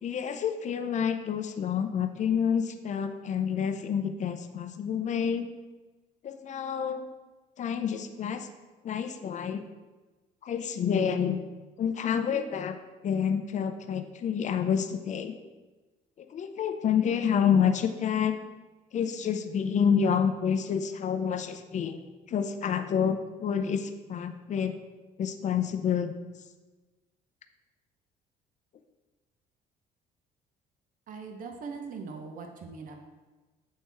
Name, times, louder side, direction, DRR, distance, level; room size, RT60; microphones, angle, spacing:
voice 1, 0.0-5.5 6.2-7.0 7.6-8.5 8.8-9.6 10.4-11.4 11.8-12.8 13.0-15.3 16.2-18.4 18.9-22.0 22.3-24.8 25.2-26.1, left 7 dB, 45° left, 8 dB, 0.6 m, -28 dB
voice 2, 31.1-33.0, right 4 dB, 55° right, 4 dB, 0.8 m, -40 dB
7.8 x 4.3 x 3.4 m, 1.2 s
cardioid pair, 110°, 17 cm